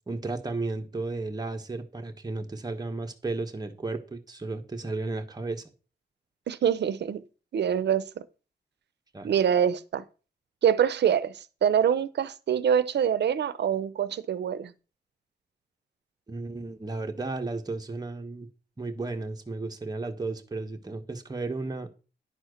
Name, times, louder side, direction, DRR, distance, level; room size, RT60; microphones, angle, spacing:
voice 1, 0.1-5.6 9.1-9.3 16.3-18.5 18.8-21.9, right 3 dB, 25° right, 1.3 m, -34 dB
voice 2, 6.5-7.2 7.5-8.2 9.2-10.0 10.6-14.7, right 8 dB, 80° right, 0.7 m, -25 dB
10.5 x 4.4 x 6.4 m
wide cardioid pair, 125°, 17 cm